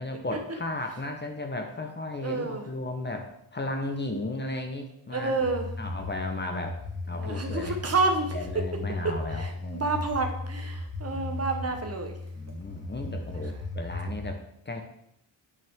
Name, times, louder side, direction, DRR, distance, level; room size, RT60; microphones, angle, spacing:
voice 1, 0.0-5.3 5.8-6.8 7.1-7.7 8.3-9.8 11.1-11.5 12.3-14.4 14.7-14.8, left 2 dB, 25° left, 4 dB, 0.9 m, -35 dB
voice 2, 2.2-2.6 5.1-5.7 7.1-8.4 9.0-12.2, right 3 dB, 35° right, 4 dB, 1.0 m, -29 dB
sound 1, 5.4-14.3, left 2 dB, 45° left, 1.9 m, -36 dB
8.8 x 6.2 x 3.6 m, 0.75 s
wide cardioid pair, 140°, 45 cm